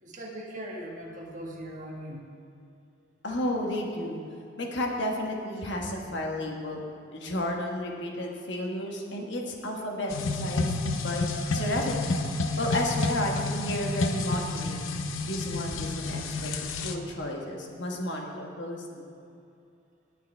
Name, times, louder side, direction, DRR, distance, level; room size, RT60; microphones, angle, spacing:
voice 1, 0.0-2.3, right 1 dB, 40° right, -2 dB, 1.4 m, -40 dB
voice 2, 3.2-4.2 4.6-6.8 7.1-12.2 12.6-14.8 15.2-19.1, left 1 dB, 60° left, 0 dB, 1.2 m, -32 dB
sound 1, 10.1-17.0, left 3 dB, 85° left, 0.7 m, -30 dB
18.5 x 6.7 x 3.3 m, 2.6 s
head